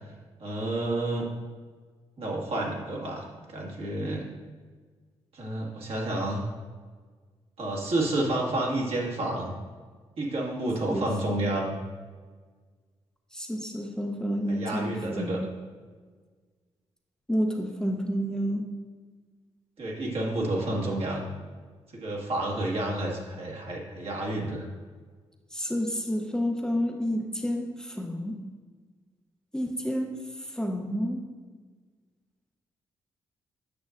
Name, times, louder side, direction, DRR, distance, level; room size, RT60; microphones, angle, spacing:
voice 1, 0.4-1.3 2.2-3.2 3.5-4.2 5.3-6.4 7.6-9.5 10.2-11.8 14.5-15.4 19.8-21.2 21.9-24.7, right 1 dB, 60° right, -2 dB, 1.6 m, -30 dB
voice 2, 13.3-15.5 17.3-18.6 25.5-28.4 29.5-30.1 30.6-31.2, equal, 5° left, 2 dB, 0.7 m, -29 dB
8.5 x 6.1 x 2.5 m, 1.5 s
supercardioid pair, 60°, 11 cm